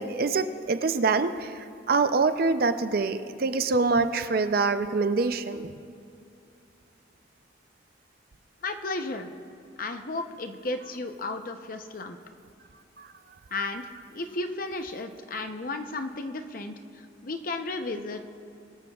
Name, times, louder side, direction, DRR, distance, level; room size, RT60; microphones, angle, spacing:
voice 1, 0.0-5.7 13.0-13.1, right 4 dB, 50° right, 10 dB, 0.5 m, -25 dB
voice 2, 8.6-9.3 9.8-12.2 13.5-13.8 14.1-18.3, left 2 dB, 45° left, 7 dB, 0.7 m, -34 dB
22.5 x 13.0 x 2.4 m, 2.6 s
head